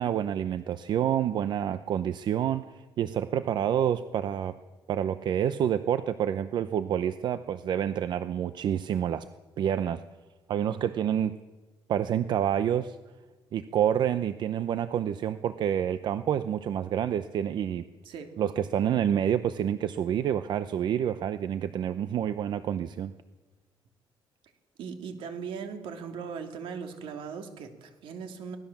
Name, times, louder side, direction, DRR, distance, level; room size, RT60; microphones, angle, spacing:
voice 1, 0.0-4.5 4.9-9.2 9.6-10.0 10.5-11.4 11.9-13.0 13.5-17.8 18.4-23.1, right 9 dB, 55° right, 12 dB, 0.7 m, -28 dB
voice 2, 18.0-18.4 24.8-28.6, right 6 dB, 80° right, 5 dB, 2.8 m, -39 dB
24.0 x 18.0 x 7.2 m, 1.2 s
cardioid pair, 140°, 9 cm